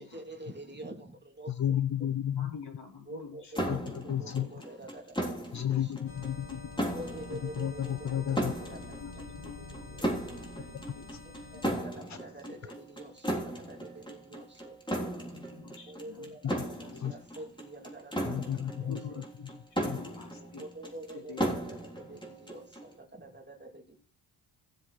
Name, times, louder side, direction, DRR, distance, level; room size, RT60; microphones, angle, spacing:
voice 1, 0.0-1.8 3.1-3.4 3.7-6.0 6.9-10.1 11.5-14.8 15.9-18.4 18.8-19.2 20.4-24.0, right 1 dB, 20° right, 1 dB, 2.9 m, -47 dB
voice 2, 1.5-2.5 3.7-4.5 5.5-6.8 7.3-8.5 16.4-16.5 17.0-17.1 18.3-19.0 19.9-20.0, left 10 dB, 40° left, 15 dB, 0.5 m, -32 dB
voice 3, 2.4-3.5 3.9-4.6 5.5-5.6 9.0-12.1 12.5-12.6 15.2-17.0 17.3-17.5 18.9-20.7 21.1-21.6 22.1-22.3, left 4 dB, 55° left, 1 dB, 4.3 m, -49 dB
sound 1, 3.5-22.9, right 1 dB, 10° left, 3.4 m, -36 dB
sound 2, 6.1-11.8, left 3 dB, 75° left, 4.2 m, -46 dB
16.5 x 7.4 x 3.3 m, 0.38 s
cardioid pair, 70°, 48 cm